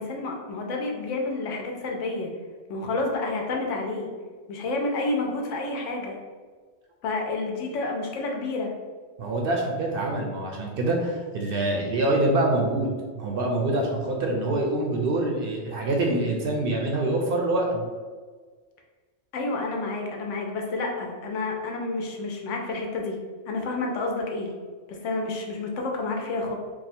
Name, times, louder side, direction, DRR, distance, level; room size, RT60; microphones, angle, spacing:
voice 1, 0.0-2.3 2.7-4.1 4.5-6.2 7.0-8.7 19.3-23.2 23.5-24.5 24.9-26.5, left 3 dB, 85° left, 1 dB, 1.0 m, -29 dB
voice 2, 9.2-17.8, right 2 dB, 60° right, 0 dB, 0.6 m, -25 dB
2.7 x 2.3 x 4.1 m, 1.5 s
omnidirectional pair, 1.2 m